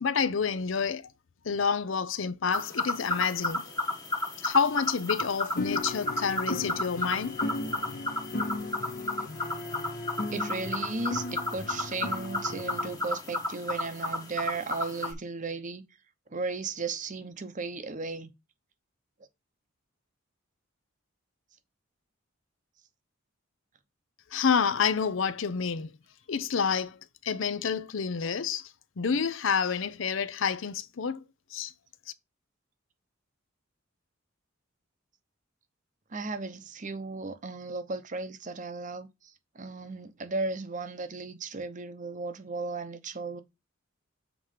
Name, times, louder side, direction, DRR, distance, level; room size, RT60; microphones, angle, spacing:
voice 1, 0.0-1.1 1.4-3.6 4.4-7.4 24.3-25.9 26.3-31.2 31.5-31.7, left 6 dB, 65° left, 0.6 m, -28 dB
sound 1, 2.5-15.1, left 2 dB, 20° left, 1.2 m, -33 dB
sound 2, 5.6-13.0, left 2 dB, 45° left, 0.9 m, -36 dB
voice 2, 10.3-15.8 16.3-18.3 36.1-43.4, right 3 dB, 40° right, 0.8 m, -35 dB
7.5 x 3.0 x 4.9 m
head